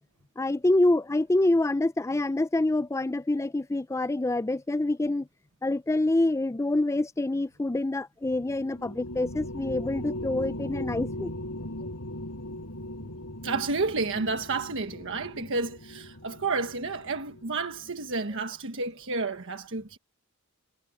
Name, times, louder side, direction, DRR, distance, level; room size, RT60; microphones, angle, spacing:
voice 1, 0.4-5.3 5.6-11.3, left 2 dB, 15° left, 0.4 m, -26 dB
sound 1, 8.2-18.0, left 1 dB, 70° left, 6.6 m, -39 dB
voice 2, 13.4-20.0, right 3 dB, 60° right, 1.4 m, -31 dB
head